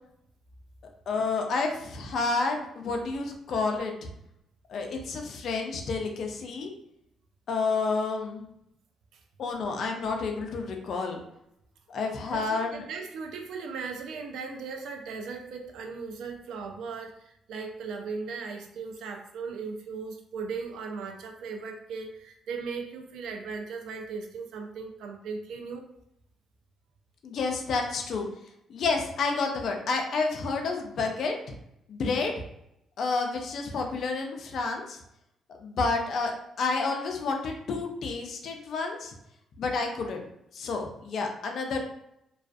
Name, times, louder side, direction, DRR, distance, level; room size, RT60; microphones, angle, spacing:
voice 1, 1.1-3.9 4.7-6.7 7.5-8.4 9.4-11.2 11.9-12.8 27.2-28.3 28.7-31.3 31.9-32.3 33.0-35.0 35.6-39.1 39.6-40.3 40.5-41.8, left 4 dB, 65° left, 2 dB, 0.4 m, -30 dB
voice 2, 12.3-25.9, right 5 dB, 80° right, 3 dB, 0.4 m, -37 dB
2.3 x 2.3 x 2.4 m, 0.77 s
cardioid pair, 90°, 0 cm